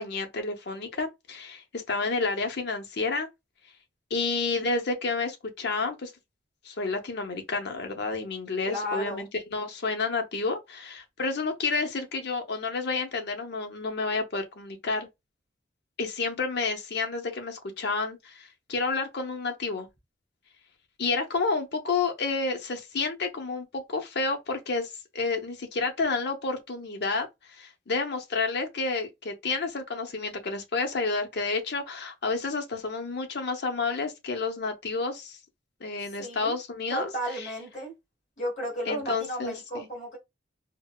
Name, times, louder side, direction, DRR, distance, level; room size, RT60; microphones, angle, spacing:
voice 1, 0.0-3.3 4.1-6.1 6.6-15.1 16.0-19.9 21.0-35.4 35.8-37.5 38.9-39.9, left 3 dB, 65° left, 0.7 m, -30 dB
voice 2, 8.6-9.2 36.2-36.5 36.9-37.9 38.4-40.2, equal, 40° left, 1.6 m, -33 dB
3.9 x 2.1 x 2.2 m
head